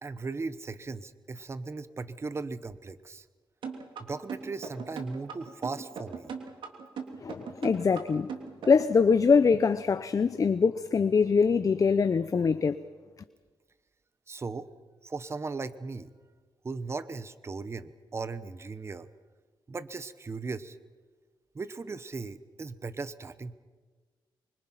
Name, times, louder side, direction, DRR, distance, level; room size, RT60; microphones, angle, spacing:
voice 1, 0.0-3.3 4.0-6.3 14.3-14.7 15.0-16.1 16.6-19.1 19.7-20.8 21.5-23.6, right 4 dB, 30° right, 1.0 m, -37 dB
sound 1, 3.6-9.0, right 6 dB, 80° right, 3.2 m, -38 dB
voice 2, 7.2-8.3 8.7-12.8, left 5 dB, 40° left, 0.7 m, -23 dB
25.5 x 24.5 x 5.8 m
cardioid pair, 95°, 8 cm